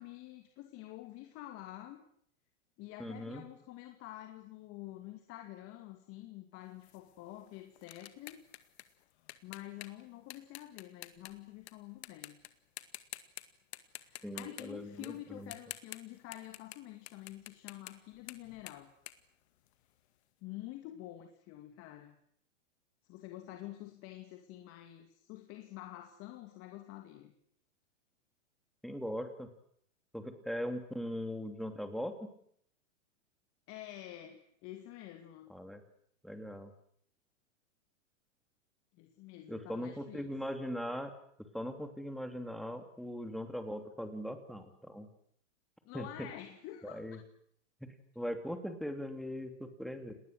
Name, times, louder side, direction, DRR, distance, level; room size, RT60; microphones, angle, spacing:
voice 1, 0.0-2.0 2.8-8.4 9.4-12.4 14.0-18.9 20.4-22.2 23.1-27.3 33.7-35.5 38.9-40.3 45.9-47.0, left 14 dB, 35° left, 5 dB, 2.5 m, -48 dB
voice 2, 3.0-3.4 14.2-15.5 28.8-29.5 30.1-32.3 35.5-35.8 36.2-36.7 39.5-41.1 41.4-45.1 45.9-46.1 46.8-47.2 48.1-50.1, equal, ahead, 7 dB, 2.9 m, -40 dB
sound 1, 6.8-11.7 12.0-12.5 12.8-13.4 13.7-20.1, left 15 dB, 55° left, 2.1 m, -49 dB
29.5 x 20.0 x 8.1 m, 0.66 s
hypercardioid pair, 135°, 38 cm